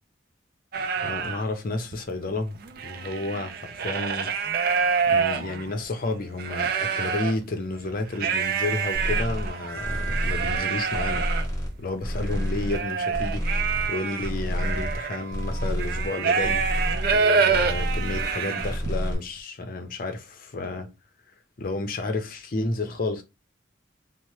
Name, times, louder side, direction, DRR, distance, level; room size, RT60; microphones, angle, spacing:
sound 1, 0.7-1.4 1.9-2.0 2.3-5.8 6.3-7.4 8.1-19.0, right 5 dB, 50° right, 0.4 m, -27 dB
voice 1, 1.0-2.6 2.8-4.3 5.1-11.3 11.8-16.6 17.1-20.9 21.6-23.2, left 2 dB, 50° left, 0.6 m, -31 dB
sound 2, 8.9-9.5 9.8-10.6 10.9-11.7 12.0-12.8 13.1-13.9 14.2-15.0 15.3-16.1 16.4-17.2 17.5-18.3 18.6-19.2, equal, 20° left, 1.0 m, -29 dB
2.8 x 2.0 x 3.0 m
head